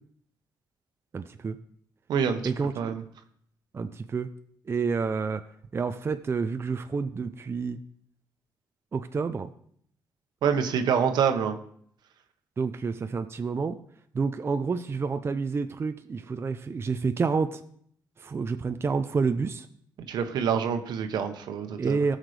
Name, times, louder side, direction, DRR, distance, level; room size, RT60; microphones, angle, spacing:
voice 1, 1.1-1.6 2.4-2.9 3.7-4.3 4.7-5.4 5.7-7.8 8.9-9.5 12.6-13.8 14.1-17.6 18.2-19.7 21.8-22.2, right 5 dB, 35° right, 8 dB, 0.5 m, -29 dB
voice 2, 2.1-2.4 2.8-3.0 10.4-11.6 20.1-22.0, right 7 dB, 80° right, 7 dB, 1.1 m, -26 dB
17.5 x 6.5 x 3.3 m, 0.64 s
cardioid pair, 80°, 7 cm